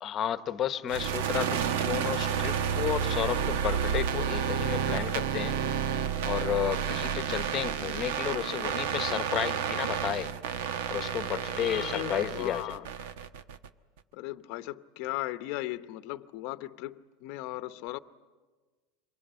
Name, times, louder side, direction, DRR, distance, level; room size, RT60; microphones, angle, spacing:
voice 1, 0.0-5.6 6.2-10.3 10.9-12.8, left 10 dB, 30° left, 1.0 m, -32 dB
sound 1, 0.9-13.7, right 8 dB, 75° right, 1.1 m, -31 dB
voice 2, 11.7-12.9 14.1-18.0, left 17 dB, 55° left, 0.8 m, -37 dB
26.5 x 22.5 x 8.9 m
supercardioid pair, 160°, 0 cm